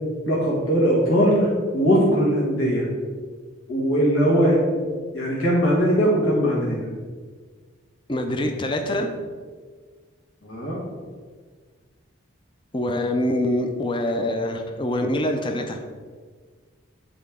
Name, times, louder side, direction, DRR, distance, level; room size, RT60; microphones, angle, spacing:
voice 1, 0.3-2.9 3.7-4.9 5.1-6.8 10.4-10.8, equal, 85° left, -5 dB, 1.7 m, -20 dB
voice 2, 8.1-9.1 12.7-15.8, left 1 dB, 25° left, 5 dB, 0.5 m, -25 dB
8.6 x 4.1 x 3.6 m, 1.5 s
head